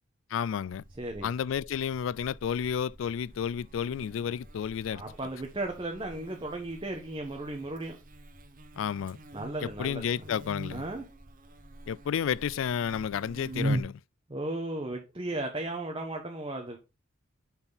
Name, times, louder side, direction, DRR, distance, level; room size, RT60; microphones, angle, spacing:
voice 1, 0.3-0.8 1.2-5.0 8.8-9.2 9.6-10.8 11.9-14.0, left 8 dB, 80° left, 0.3 m, -31 dB
Buzz, 0.7-13.8, right 1 dB, 45° right, 1.1 m, -41 dB
voice 2, 1.0-1.3 4.9-8.0 9.3-10.1 10.7-11.0 14.3-16.8, right 2 dB, 25° right, 1.1 m, -35 dB
8.9 x 4.4 x 4.0 m
head